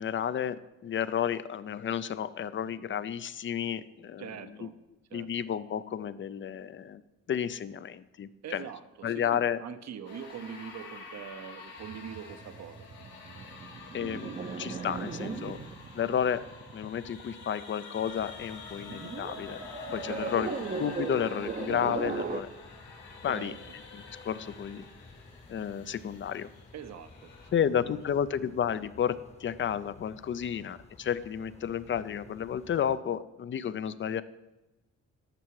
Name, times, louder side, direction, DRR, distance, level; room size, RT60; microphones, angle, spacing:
voice 1, 0.0-4.7 5.1-7.0 7.3-8.7 9.0-9.6 13.9-14.3 14.6-15.6 15.9-16.4 16.7-19.6 19.9-20.5 20.8-22.5 23.2-23.5 23.9-24.8 25.5-26.5 27.5-34.2, left 8 dB, 40° left, 16 dB, 0.5 m, -32 dB
voice 2, 4.2-4.7 5.1-5.3 8.4-12.9 20.1-20.5 23.3-23.6 26.7-27.3 27.8-28.0, right 8 dB, 60° right, 11 dB, 0.9 m, -43 dB
sound 1, 10.0-27.5, left 4 dB, 85° left, 2.3 m, -47 dB
sound 2, 11.8-17.7 18.7-22.4, right 5 dB, 30° right, 0.7 m, -38 dB
sound 3, 18.0-33.0, left 3 dB, 20° left, 1.0 m, -54 dB
13.0 x 5.7 x 4.7 m, 1.0 s
cardioid pair, 90°, 30 cm